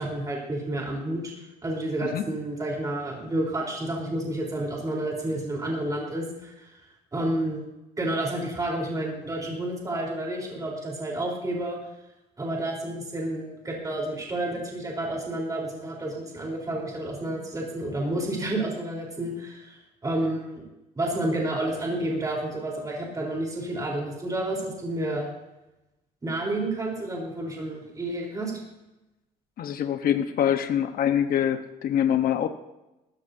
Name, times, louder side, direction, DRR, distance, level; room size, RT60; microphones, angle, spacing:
voice 1, 0.0-1.3 1.6-6.8 7.1-7.6 8.0-11.8 12.4-20.6 20.9-25.3 26.2-28.5, right 1 dB, 20° right, -1 dB, 4.0 m, -30 dB
voice 2, 29.6-32.5, left 9 dB, 60° left, 7 dB, 1.1 m, -24 dB
18.5 x 14.5 x 2.8 m, 0.96 s
cardioid pair, 110°, 17 cm